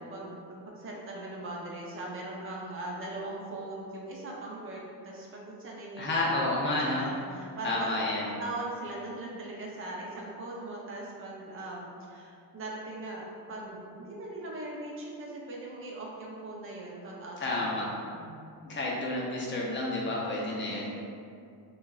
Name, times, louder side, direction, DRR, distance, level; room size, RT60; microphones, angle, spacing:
voice 1, 0.0-18.6 20.6-20.9, right 2 dB, 35° right, -3 dB, 0.6 m, -40 dB
voice 2, 6.0-7.0 7.6-8.3 17.4-17.9 18.6-20.9, left 2 dB, 30° left, -4 dB, 0.6 m, -30 dB
6.2 x 2.4 x 2.3 m, 2.4 s
cardioid pair, 170°, 40 cm